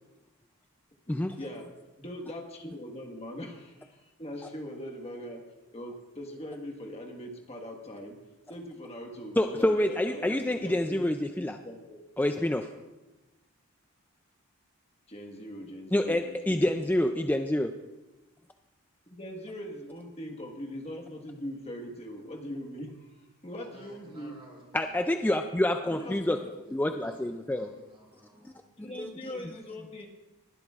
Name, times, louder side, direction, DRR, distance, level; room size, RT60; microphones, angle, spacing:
voice 1, 1.1-1.7 2.0-5.4 5.7-8.2 8.5-11.1 11.4-12.0 15.1-17.3 19.1-24.4 25.9-26.5 28.8-30.1, equal, 30° left, 2 dB, 1.5 m, -41 dB
voice 2, 9.4-11.6 12.2-12.7 15.9-17.7 24.7-26.4 26.7-27.7 28.4-28.5 29.0-29.1, left 1 dB, 10° left, 6 dB, 0.3 m, -27 dB
voice 3, 23.6-25.0 25.9-28.7, equal, 25° right, -2 dB, 3.3 m, -55 dB
20.5 x 12.0 x 2.4 m, 1.1 s
head